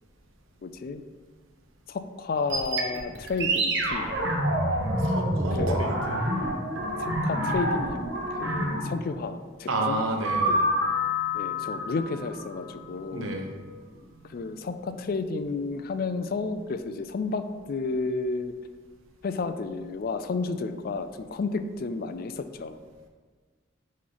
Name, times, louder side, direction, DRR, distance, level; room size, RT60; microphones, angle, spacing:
voice 1, 0.6-1.0 1.9-4.1 5.5-5.8 7.0-8.0 8.3-10.4 11.3-13.3 14.2-18.5 19.2-22.8, left 4 dB, 45° left, 11 dB, 0.3 m, -32 dB
sound 1, 2.5-9.0 10.2-12.8, equal, 60° right, 1.0 m, -27 dB
voice 2, 5.0-6.2 9.7-10.6 13.1-13.5, right 2 dB, 85° right, 2 dB, 1.0 m, -30 dB
9.4 x 3.2 x 3.9 m, 1.5 s
head